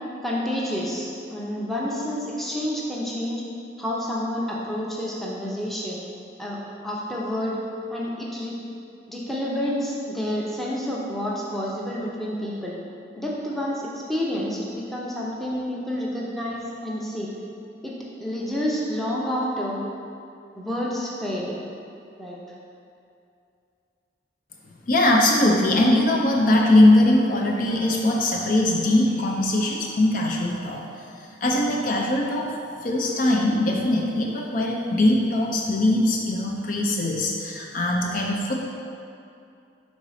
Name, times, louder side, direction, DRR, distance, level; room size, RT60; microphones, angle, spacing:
voice 1, 0.2-3.4 3.8-6.0 6.4-7.6 7.9-8.5 9.1-12.8 13.2-17.3 17.8-19.8 20.6-21.5 22.2-22.4, equal, ahead, -5 dB, 0.7 m, -29 dB
voice 2, 24.9-30.9 31.4-32.5 32.8-38.6, left 1 dB, 45° left, -1 dB, 0.6 m, -21 dB
5.3 x 3.9 x 4.8 m, 2.6 s
head